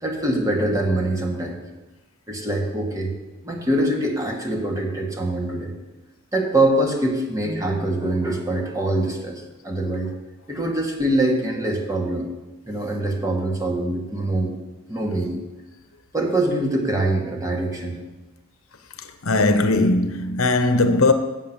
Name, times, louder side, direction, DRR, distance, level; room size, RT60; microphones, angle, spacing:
voice 1, 0.0-1.6 2.3-3.1 3.4-5.7 6.3-10.1 10.5-12.3 12.7-14.5 14.9-15.4 16.1-18.0, right 1 dB, 15° right, 1.3 m, -24 dB
voice 2, 18.9-21.1, left 2 dB, 70° left, 0.9 m, -19 dB
7.4 x 6.6 x 7.3 m
head